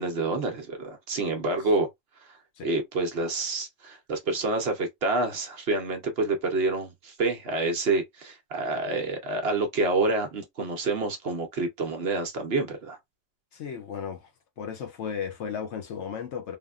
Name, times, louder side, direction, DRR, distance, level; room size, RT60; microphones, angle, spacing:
voice 1, 0.0-1.9 2.6-13.0, right 3 dB, 55° right, 0.9 m, -28 dB
voice 2, 13.5-14.3 14.6-16.6, left 7 dB, 65° left, 0.9 m, -35 dB
3.4 x 2.1 x 2.3 m
omnidirectional pair, 1.3 m